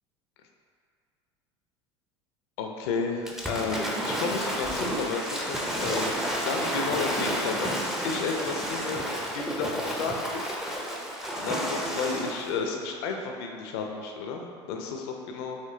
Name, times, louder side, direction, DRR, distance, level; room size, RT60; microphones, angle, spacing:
voice 1, 2.6-6.1 6.4-9.0 9.3-10.6 11.4-15.6, left 4 dB, 60° left, 2 dB, 0.5 m, -32 dB
Waves surf / Splash splatter, 3.3-12.5, equal, 5° right, 0.6 m, -31 dB
5.0 x 3.1 x 2.8 m, 2.2 s
figure-of-eight pair, 70°, 15 cm